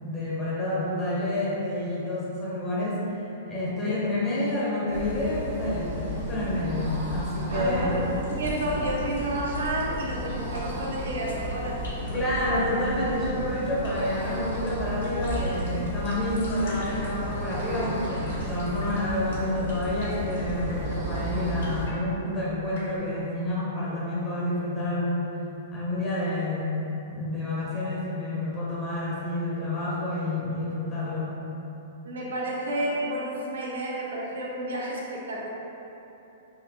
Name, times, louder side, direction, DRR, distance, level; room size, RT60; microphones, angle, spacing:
voice 1, 0.0-3.0 3.5-8.0 12.1-25.3 25.7-26.8 27.1-31.4, left 1 dB, 20° left, -7 dB, 0.9 m, -29 dB
sound 1, 4.9-21.9, right 1 dB, 65° right, 1.0 m, -33 dB
voice 2, 7.5-11.8 32.0-35.5, right 1 dB, 85° right, -4 dB, 0.6 m, -31 dB
sound 2, 8.2-23.0, left 1 dB, 85° left, 1.0 m, -48 dB
3.9 x 2.4 x 2.3 m, 2.9 s
hypercardioid pair, 140°, 0 cm